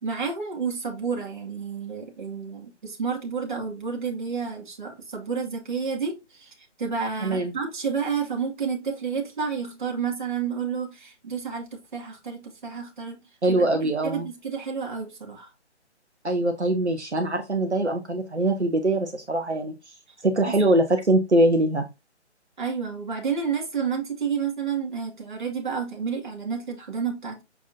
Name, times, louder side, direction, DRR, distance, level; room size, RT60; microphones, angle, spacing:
voice 1, 0.0-13.2 13.5-15.5 20.5-20.6 22.6-27.4, right 6 dB, 45° right, 2.6 m, -30 dB
voice 2, 7.2-7.5 13.4-14.3 16.2-19.9 20.2-21.9, right 1 dB, 70° right, 1.6 m, -23 dB
7.3 x 4.9 x 2.8 m
figure-of-eight pair, 145°, 35 cm